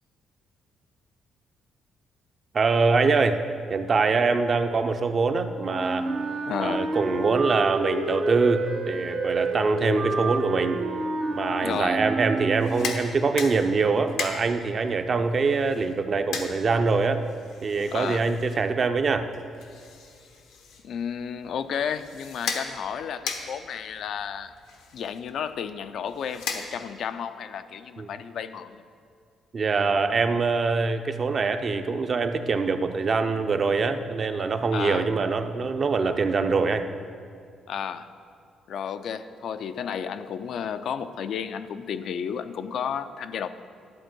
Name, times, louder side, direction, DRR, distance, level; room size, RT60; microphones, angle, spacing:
voice 1, 2.5-3.4 3.7-6.1 6.6-10.8 11.3-17.2 17.6-19.3 28.0-28.1 29.5-36.8, right 4 dB, 45° right, 8 dB, 0.6 m, -24 dB
Wind instrument woodwind instrument, 5.6-12.9, right 2 dB, 85° right, 1.8 m, -29 dB
voice 2, 6.5-6.9 11.6-12.0 17.9-18.3 20.8-24.5 24.9-28.8 34.7-35.1 37.7-38.1 38.7-43.5, left 7 dB, 70° left, 10 dB, 0.4 m, -32 dB
sound 1, 12.5-27.1, left 5 dB, 90° left, 1.0 m, -39 dB
11.5 x 4.4 x 7.7 m, 2.3 s
cardioid pair, 90°, 0 cm